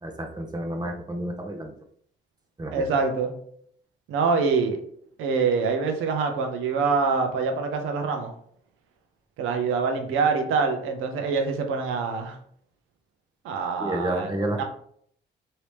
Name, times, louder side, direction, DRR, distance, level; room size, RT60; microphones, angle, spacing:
voice 1, 0.0-1.7 2.6-2.8 13.8-14.6, right 1 dB, 20° right, 2 dB, 0.7 m, -30 dB
voice 2, 2.7-3.3 4.1-4.8 5.2-8.3 9.4-12.4 13.4-14.3 14.6-14.7, right 4 dB, 90° right, 5 dB, 0.6 m, -25 dB
3.0 x 2.8 x 3.2 m, 0.64 s
cardioid pair, 70°, 20 cm